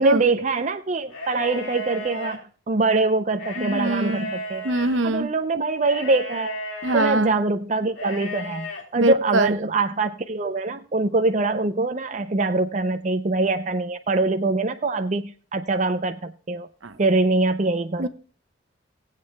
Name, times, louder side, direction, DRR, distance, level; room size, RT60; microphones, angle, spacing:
voice 1, 0.0-4.6 5.0-6.6 6.9-16.7 17.0-18.1, right 3 dB, 40° right, 0.5 m, -23 dB
sound 1, 1.1-2.4 3.3-5.0 5.8-7.1 7.9-8.8, left 1 dB, 80° left, 2.8 m, -34 dB
voice 2, 3.6-4.3 4.6-5.3 6.8-7.3 9.0-9.6 16.8-17.0 18.0-18.1, right 2 dB, 75° right, 0.8 m, -23 dB
19.5 x 8.3 x 2.2 m
head